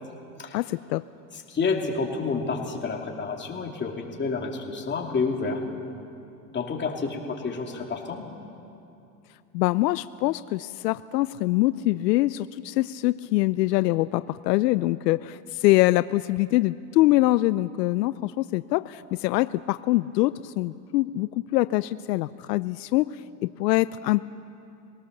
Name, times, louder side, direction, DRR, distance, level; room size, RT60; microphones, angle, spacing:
voice 1, 0.5-1.0 9.5-23.1 23.6-24.2, left 18 dB, 80° left, 15 dB, 0.6 m, -24 dB
voice 2, 1.5-5.6 6.5-8.2, left 4 dB, 20° left, 1 dB, 2.9 m, -29 dB
23.0 x 18.5 x 6.8 m, 2.7 s
supercardioid pair, 110°, 48 cm